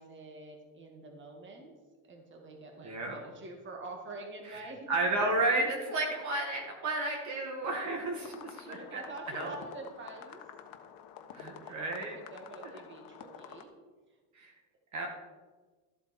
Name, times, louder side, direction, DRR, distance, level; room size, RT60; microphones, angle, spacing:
voice 1, 0.0-1.7 2.0-5.0 5.5-5.7 8.2-8.3 8.7-10.4 11.6-13.7 14.1-14.2, right 2 dB, 25° right, 2 dB, 2.0 m, -46 dB
voice 2, 2.8-3.2 4.9-9.0 9.3-9.5 11.3-12.1 14.3-14.5 14.9-15.1, right 2 dB, 45° right, 1 dB, 1.9 m, -32 dB
sound 1, 8.2-13.6, left 8 dB, 55° left, 1.3 m, -49 dB
13.5 x 7.9 x 4.4 m, 1.3 s
cardioid pair, 140°, 41 cm